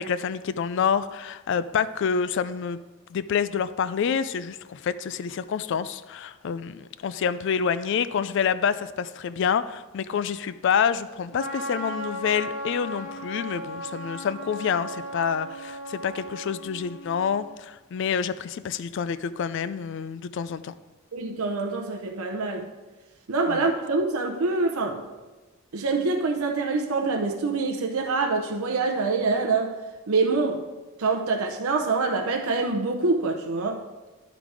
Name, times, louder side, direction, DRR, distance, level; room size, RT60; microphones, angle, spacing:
voice 1, 0.0-2.8 3.1-20.7 23.5-23.7, left 7 dB, 55° left, 14 dB, 0.3 m, -27 dB
Trumpet, 11.3-17.5, equal, 85° left, 1.5 m, -36 dB
voice 2, 21.1-22.7 23.3-25.0 25.7-29.7 30.1-30.6 31.0-33.8, right 3 dB, 80° right, 2 dB, 0.7 m, -25 dB
11.5 x 3.9 x 4.7 m, 1.2 s
head